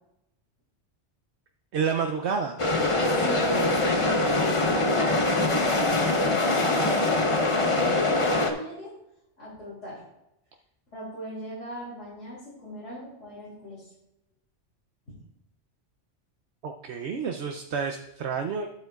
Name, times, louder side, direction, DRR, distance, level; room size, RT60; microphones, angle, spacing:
voice 1, 1.7-2.6 16.6-18.7, right 6 dB, 65° right, 4 dB, 0.9 m, -29 dB
sound 1, 2.6-8.5, left 2 dB, 30° left, 0.8 m, -23 dB
voice 2, 3.1-7.0 7.3-8.9 9.4-10.0 10.9-13.9, equal, 75° left, -8 dB, 3.3 m, -38 dB
12.0 x 7.8 x 2.4 m, 0.85 s
omnidirectional pair, 1.3 m